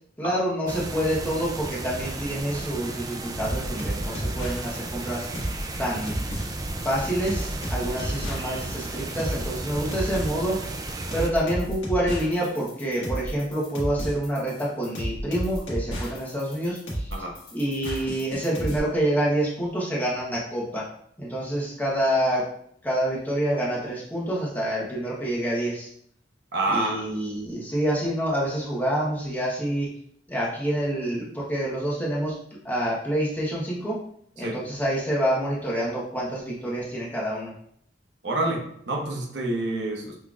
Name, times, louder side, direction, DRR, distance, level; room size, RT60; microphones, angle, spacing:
voice 1, 0.2-5.3 5.8-6.2 6.8-10.6 11.1-17.1 17.5-20.8 21.2-22.4 22.8-25.9 26.7-29.9 30.3-32.4 32.6-34.0 34.4-37.5, right 1 dB, 10° left, -5 dB, 1.1 m, -27 dB
sound 1, 0.7-11.3, right 2 dB, 20° right, 0.3 m, -34 dB
sound 2, 3.4-18.8, equal, 75° left, 1.5 m, -32 dB
voice 2, 26.5-27.1 34.4-34.6 38.2-40.2, right 2 dB, 80° right, 0 dB, 0.9 m, -28 dB
6.0 x 3.2 x 2.4 m, 0.67 s
head